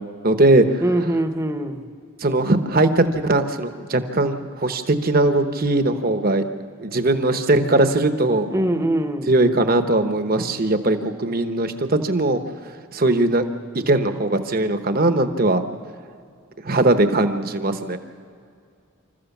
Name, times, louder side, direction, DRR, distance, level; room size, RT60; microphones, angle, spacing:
voice 1, 0.2-0.8 2.2-6.4 6.8-8.5 9.3-12.4 12.9-13.4 13.9-15.6 16.6-18.0, right 2 dB, 45° right, 8 dB, 1.0 m, -19 dB
voice 2, 0.8-1.9 8.5-9.3, right 1 dB, 15° right, 7 dB, 0.9 m, -22 dB
26.5 x 14.0 x 7.2 m, 2.4 s
head